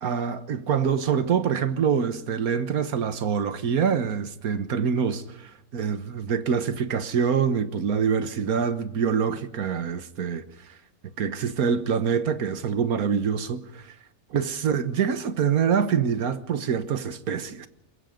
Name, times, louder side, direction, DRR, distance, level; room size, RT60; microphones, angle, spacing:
voice 1, 0.0-10.5 11.2-13.9 14.3-17.7, right 7 dB, 85° right, 1.7 m, -25 dB
23.5 x 21.5 x 5.2 m
omnidirectional pair, 1.5 m